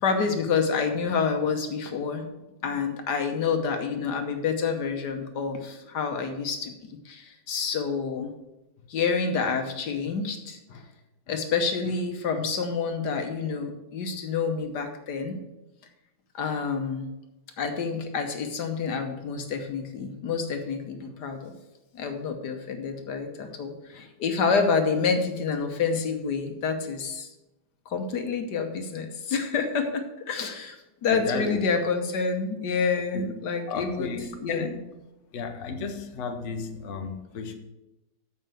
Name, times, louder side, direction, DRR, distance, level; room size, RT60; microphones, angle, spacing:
voice 1, 0.0-2.3 2.6-6.7 7.0-8.3 8.9-10.8 11.3-15.4 16.3-17.1 17.6-21.5 21.9-27.3 27.9-30.8 31.0-34.1 34.4-34.8, left 5 dB, 70° left, 5 dB, 1.5 m, -28 dB
voice 2, 31.1-31.6 33.1-33.3 33.7-34.8 35.3-37.5, left 4 dB, 50° left, 4 dB, 1.1 m, -33 dB
7.4 x 5.5 x 7.5 m, 0.98 s
omnidirectional pair, 2.0 m